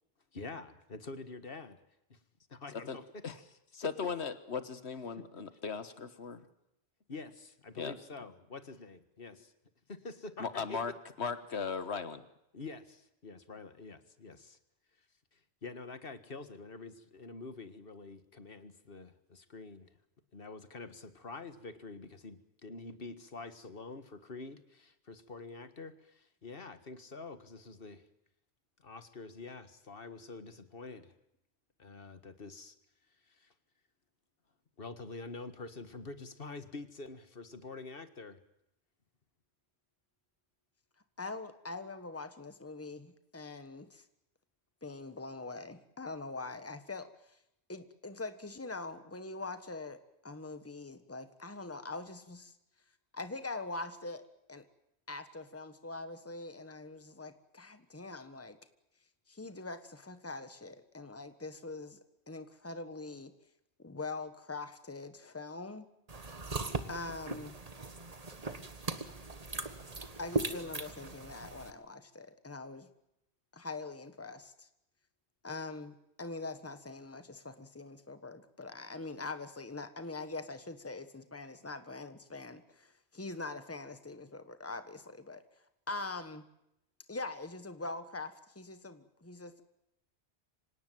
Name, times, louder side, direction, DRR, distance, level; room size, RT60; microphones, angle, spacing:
voice 1, 0.3-1.8 2.1-2.2 2.5-3.0 3.4-3.5 5.2-5.3 7.1-9.5 9.9-10.8 12.5-14.6 15.3-19.9 20.3-28.0 28.8-31.1 31.8-32.8 33.3-33.5 34.8-38.4, left 3 dB, 60° left, 11 dB, 1.9 m, -47 dB
voice 2, 3.7-6.4 7.8-7.9 10.4-10.9 11.2-12.3, left 5 dB, 85° left, 12 dB, 1.6 m, -37 dB
voice 3, 41.2-44.0 44.8-47.1 47.7-52.5 53.1-54.2 54.5-54.6 55.1-58.6 59.3-62.0 62.3-63.3 63.8-65.9 66.9-67.6 70.2-72.9 73.5-74.7 75.4-85.4 85.9-86.5 87.1-89.6, left 3 dB, 15° left, 10 dB, 1.4 m, -43 dB
sound 1, 66.1-71.7, right 3 dB, 35° right, 1.5 m, -39 dB
25.5 x 18.0 x 9.3 m, 0.82 s
omnidirectional pair, 1.1 m